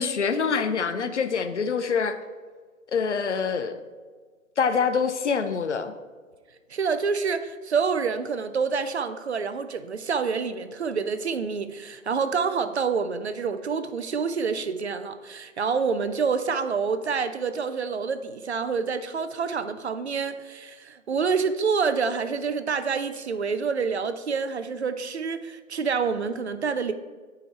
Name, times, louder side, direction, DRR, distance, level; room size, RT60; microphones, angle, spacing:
voice 1, 0.0-2.1 2.9-3.8 4.6-5.9, left 5 dB, 55° left, 0.6 m, -25 dB
voice 2, 6.7-26.9, right 5 dB, 55° right, 0.5 m, -27 dB
9.2 x 4.8 x 3.3 m
figure-of-eight pair, 130°, 42 cm